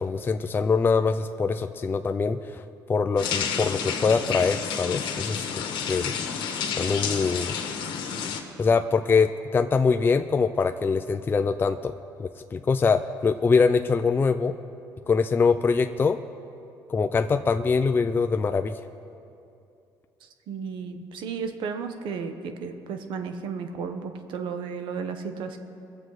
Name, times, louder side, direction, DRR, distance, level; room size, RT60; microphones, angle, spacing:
voice 1, 0.0-2.6 2.9-5.6 5.9-6.1 6.8-7.6 8.6-11.9 12.2-14.5 15.1-16.2 16.9-18.8, left 5 dB, 25° left, 7 dB, 0.4 m, -23 dB
sound 1, 3.2-8.4, left 7 dB, 70° left, 1.4 m, -30 dB
voice 2, 20.5-25.6, right 5 dB, 75° right, 7 dB, 1.1 m, -33 dB
22.5 x 7.6 x 4.9 m, 2.6 s
cardioid pair, 100°, 8 cm